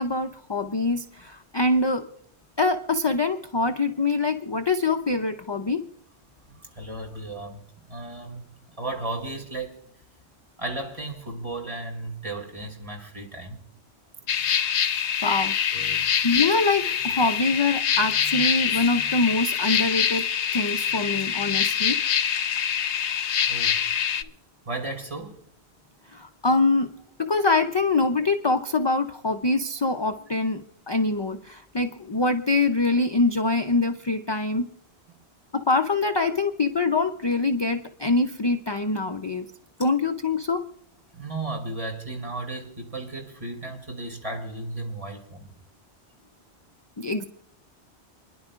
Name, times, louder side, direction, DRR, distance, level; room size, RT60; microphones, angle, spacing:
voice 1, 0.0-2.1 2.6-5.9 15.2-15.8 16.2-20.2 20.5-22.0 26.1-26.9 27.2-34.7 35.5-39.5 39.8-40.7 47.0-47.2, left 3 dB, 30° left, 0.5 m, -24 dB
voice 2, 6.5-7.6 7.9-9.8 10.6-13.6 15.7-16.0 23.5-23.8 24.6-25.4 35.1-35.2 41.1-45.5, right 2 dB, 30° right, 2.8 m, -35 dB
sound 1, 14.3-24.2, left 8 dB, 85° left, 1.0 m, -25 dB
28.5 x 10.5 x 2.5 m
omnidirectional pair, 1.1 m